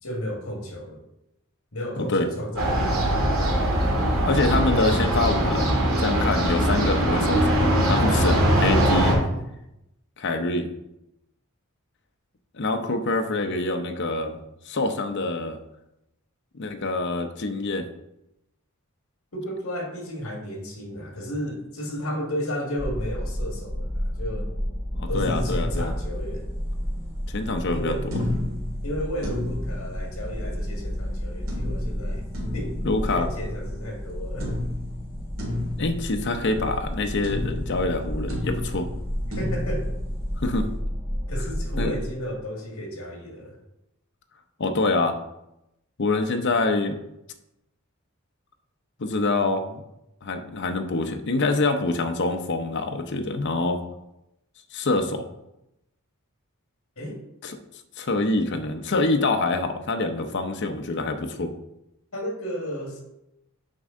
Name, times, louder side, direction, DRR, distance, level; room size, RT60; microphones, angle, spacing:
voice 1, 0.0-1.0 1.7-3.1 9.2-9.4 19.3-24.5 25.1-26.5 27.7-28.0 28.8-32.2 32.5-32.8 33.1-34.6 39.4-39.9 41.3-43.6 57.0-57.2 62.1-63.0, equal, 70° left, 2 dB, 1.7 m, -33 dB
voice 2, 2.0-2.3 4.2-9.2 10.2-10.7 12.6-14.4 14.7-15.6 16.5-17.9 24.9-25.9 27.3-28.2 32.4-32.5 32.8-33.3 35.8-38.9 40.4-40.7 41.8-41.9 44.6-45.2 46.0-47.0 49.0-49.8 50.2-53.8 54.7-55.3 57.4-57.6 58.0-61.5, left 2 dB, 55° left, 6 dB, 0.7 m, -25 dB
sound 1, 2.6-9.1, right 1 dB, 85° right, 2.6 m, -21 dB
sound 2, 22.8-41.9, equal, 5° right, 1.5 m, -31 dB
sound 3, 25.2-26.7 28.1-30.7 31.5-34.0 34.4-37.0 37.2-40.7, left 1 dB, 70° right, 2.0 m, -34 dB
7.8 x 5.2 x 3.7 m, 0.86 s
head